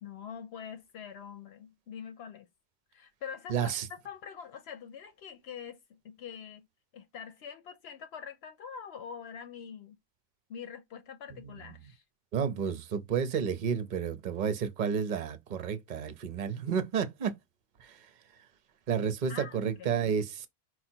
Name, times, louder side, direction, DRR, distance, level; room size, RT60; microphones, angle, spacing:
voice 1, 0.0-2.5 2.9-6.7 6.9-10.0 10.5-12.0 19.3-20.0, left 7 dB, 75° left, 0.9 m, -44 dB
voice 2, 3.5-3.9 11.4-11.8 12.3-17.3 17.8-18.1 18.9-20.5, right 7 dB, 50° right, 0.8 m, -31 dB
4.9 x 2.2 x 4.3 m
omnidirectional pair, 1.1 m